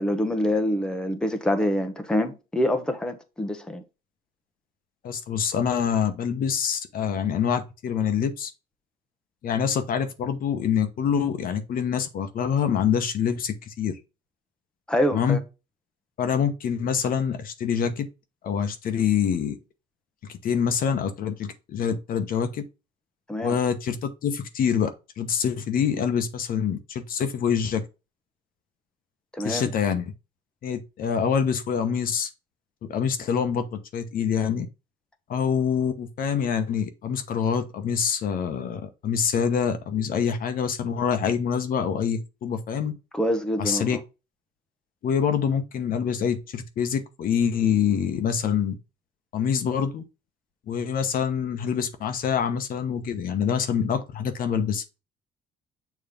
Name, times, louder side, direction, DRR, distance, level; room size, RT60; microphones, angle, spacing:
voice 1, 0.0-3.8 14.9-15.4 23.3-23.6 29.3-29.7 43.1-44.0, left 1 dB, 5° left, 0.9 m, -26 dB
voice 2, 5.0-8.5 9.4-14.0 15.1-15.4 16.2-18.1 18.4-19.6 20.3-22.6 23.4-24.9 25.2-27.8 29.4-30.1 30.6-32.3 32.8-34.7 35.3-42.9 43.6-44.0 45.0-48.8 49.3-50.0 50.7-54.8, left 7 dB, 55° left, 1.0 m, -25 dB
7.0 x 3.1 x 5.1 m
cardioid pair, 110°, 17 cm